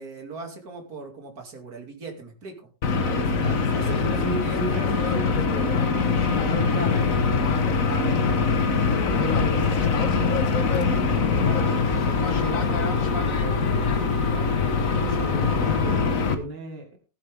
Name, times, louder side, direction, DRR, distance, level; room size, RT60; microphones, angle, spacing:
voice 1, 0.0-2.5 3.5-4.8 8.7-9.3, right 3 dB, 60° right, 3 dB, 3.2 m, -40 dB
sound 1, 2.8-16.3, left 5 dB, 50° left, 1.7 m, -23 dB
voice 2, 2.9-6.2 6.4-8.8 9.1-14.6 15.0-17.0, right 3 dB, 80° right, 3 dB, 2.7 m, -35 dB
15.5 x 10.5 x 3.6 m, 0.33 s
omnidirectional pair, 1.8 m